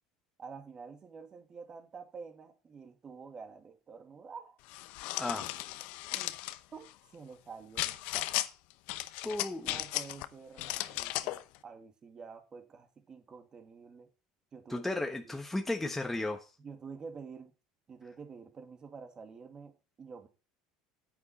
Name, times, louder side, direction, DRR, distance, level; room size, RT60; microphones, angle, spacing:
voice 1, 0.4-4.6 6.1-6.4 6.7-6.9 7.1-8.3 9.7-14.1 14.5-14.9 15.2-15.4 16.6-17.5 17.9-19.7 20.0-20.3, right 5 dB, 35° right, 2.2 m, -48 dB
sound 1, 4.7-6.6 7.8-8.5 8.9-10.3 10.6-11.4, left 17 dB, 65° left, 0.8 m, -35 dB
voice 2, 5.2-5.6 9.2-9.8 14.7-16.5, left 2 dB, 10° left, 1.2 m, -34 dB
9.5 x 8.9 x 4.2 m
hypercardioid pair, 80°, 2 cm